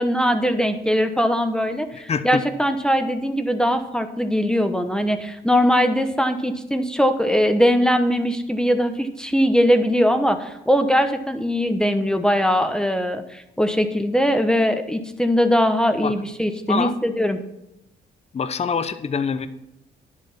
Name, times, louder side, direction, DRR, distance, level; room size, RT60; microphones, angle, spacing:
voice 1, 0.0-17.4, equal, 5° left, 7 dB, 1.0 m, -21 dB
voice 2, 1.9-2.4 16.0-16.1 16.7-16.9 18.3-19.5, left 5 dB, 30° left, 11 dB, 0.7 m, -25 dB
10.5 x 7.4 x 5.8 m, 0.84 s
cardioid pair, 90°, 20 cm